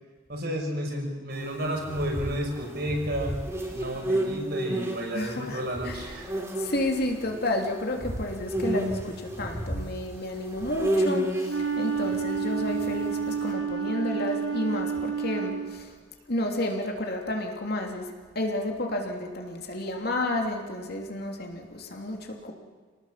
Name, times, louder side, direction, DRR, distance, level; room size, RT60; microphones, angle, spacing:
voice 1, 0.3-3.4 3.7-6.4, equal, 55° right, 1 dB, 5.9 m, -31 dB
sound 1, 1.8-7.5 8.0-13.3, right 1 dB, 15° right, 3.4 m, -31 dB
voice 2, 5.1-6.0 6.6-15.9 16.3-18.1 18.3-22.5, left 1 dB, 55° left, 2 dB, 3.1 m, -31 dB
Wind instrument woodwind instrument, 11.4-15.9, right 6 dB, 85° right, 2.3 m, -30 dB
28.5 x 19.0 x 7.6 m, 1.5 s
head